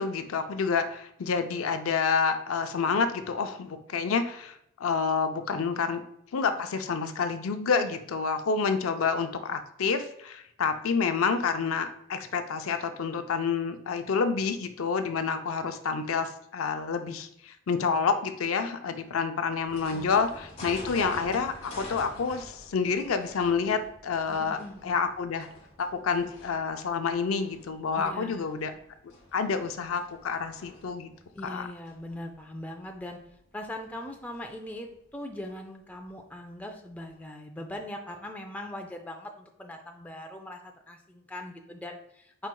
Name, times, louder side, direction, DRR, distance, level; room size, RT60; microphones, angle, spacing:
voice 1, 0.0-6.0 6.3-24.6 24.8-25.5 25.8-28.7 29.3-31.1 31.4-31.7, left 5 dB, 85° left, 8 dB, 0.5 m, -28 dB
sound 1, 19.7-35.1 35.5-35.7 36.0-36.1 36.3-36.4 37.1-37.2, left 1 dB, 30° left, 1.1 m, -47 dB
voice 2, 19.9-20.3 24.3-25.0 28.0-28.5 31.3-33.2 33.5-42.5, left 1 dB, 5° left, 3 dB, 0.4 m, -41 dB
4.6 x 4.4 x 2.2 m, 0.73 s
head